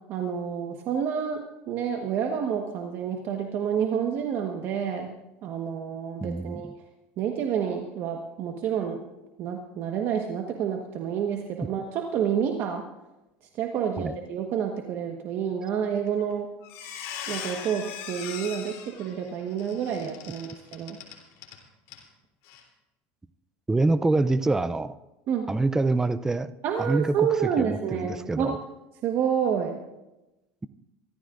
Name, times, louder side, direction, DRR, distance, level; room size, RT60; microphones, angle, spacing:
voice 1, 0.1-5.1 5.4-6.7 7.2-9.0 9.4-12.8 13.6-16.5 17.3-21.0 25.3-25.5 26.6-28.6 29.0-29.8, right 8 dB, 50° right, 2 dB, 1.4 m, -29 dB
voice 2, 6.2-6.7 14.0-14.1 23.7-24.9 25.5-26.5 26.8-28.6, right 2 dB, 10° right, 12 dB, 0.5 m, -25 dB
Squeak, 16.1-16.3 16.6-21.6 21.9-22.0 22.4-22.6, left 8 dB, 65° left, 3.4 m, -39 dB
25.0 x 14.0 x 2.6 m, 0.99 s
supercardioid pair, 125°, 5 cm